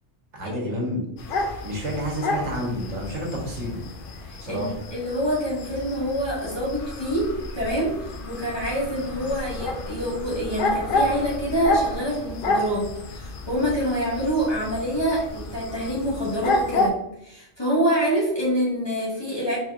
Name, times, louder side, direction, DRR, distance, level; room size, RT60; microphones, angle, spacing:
voice 1, 0.3-1.0 1.6-3.8 4.4-4.7, equal, 70° right, -2 dB, 1.5 m, -29 dB
sound 1, 1.2-16.9, left 2 dB, 55° left, 0.7 m, -30 dB
voice 2, 4.2-19.6, equal, 20° left, -7 dB, 1.7 m, -26 dB
4.4 x 4.1 x 2.5 m, 0.81 s
omnidirectional pair, 1.2 m